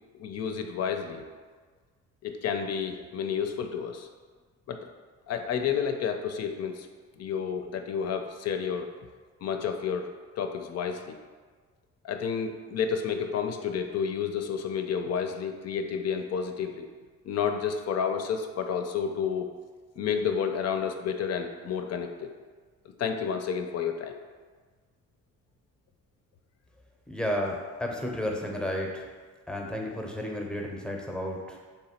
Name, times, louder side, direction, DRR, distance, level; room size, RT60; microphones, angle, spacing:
voice 1, 0.2-1.2 2.2-4.1 4.7-4.8 5.3-6.9 7.2-8.9 9.4-10.1 10.4-11.2 12.0-16.9 17.2-19.5 20.0-22.3 23.0-24.2, left 7 dB, 55° left, 5 dB, 0.4 m, -30 dB
voice 2, 27.1-29.0 29.5-31.6, left 1 dB, 5° left, -1 dB, 0.6 m, -32 dB
3.5 x 2.9 x 4.2 m, 1.5 s
cardioid pair, 90°, 30 cm